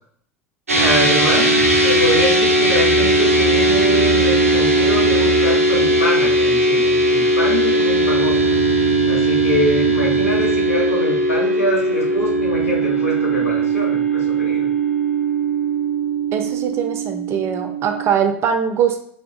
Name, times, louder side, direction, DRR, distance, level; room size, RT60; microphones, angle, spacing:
voice 1, 0.7-8.4 9.1-14.7, equal, 85° left, -3 dB, 1.0 m, -24 dB
sound 1, 0.7-18.1, right 1 dB, 90° right, 0.5 m, -18 dB
voice 2, 16.3-19.0, right 8 dB, 35° right, 6 dB, 0.4 m, -21 dB
2.7 x 2.1 x 2.4 m, 0.66 s
figure-of-eight pair, 80°, 7 cm